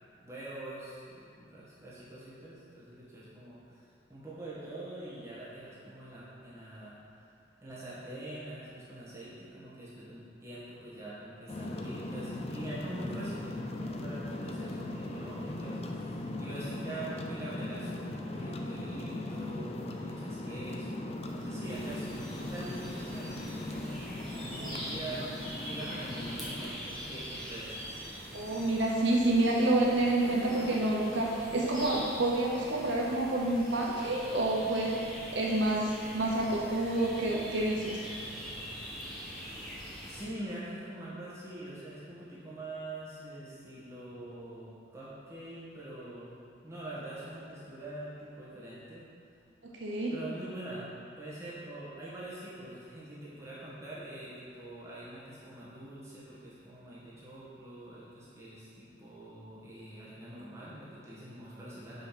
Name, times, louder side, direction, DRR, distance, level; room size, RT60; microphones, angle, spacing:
voice 1, 0.2-6.9 7.6-27.8 40.1-46.4 46.6-49.1 50.1-50.9 51.2-62.1, right 1 dB, 15° right, -9 dB, 1.7 m, -44 dB
sound 1, 11.5-26.7, left 1 dB, 30° left, 0.4 m, -39 dB
sound 2, 21.7-40.3, equal, ahead, 1.3 m, -43 dB
voice 2, 28.3-35.0 35.3-38.0 49.6-50.2, right 2 dB, 70° right, -2 dB, 0.8 m, -28 dB
5.5 x 5.2 x 5.8 m, 2.5 s
head